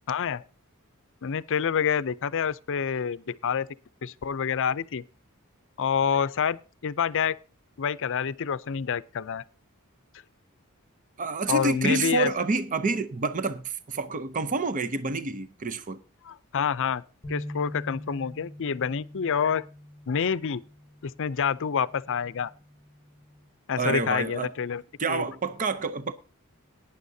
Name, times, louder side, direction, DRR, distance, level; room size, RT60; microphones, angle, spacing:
voice 1, 0.1-0.4 1.2-3.7 4.0-5.0 5.8-7.4 7.8-9.4 11.5-12.3 16.2-17.0 17.3-19.7 20.1-20.6 21.0-22.5 23.7-24.8 25.1-25.2, left 7 dB, 60° left, 0.5 m, -27 dB
voice 2, 11.2-16.0 23.8-24.5 25.0-26.1, right 3 dB, 35° right, 0.7 m, -28 dB
sound 1, 17.2-23.5, left 1 dB, ahead, 5.5 m, -44 dB
18.0 x 9.9 x 2.7 m
head